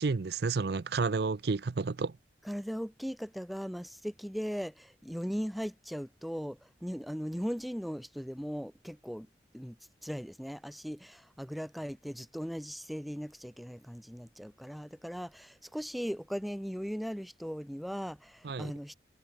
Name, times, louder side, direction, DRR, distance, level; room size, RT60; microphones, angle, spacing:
voice 1, 0.0-2.1 18.4-18.7, right 4 dB, 65° right, 0.5 m, -31 dB
voice 2, 2.5-9.3 9.5-9.8 10.0-19.0, equal, ahead, 1.9 m, -38 dB
head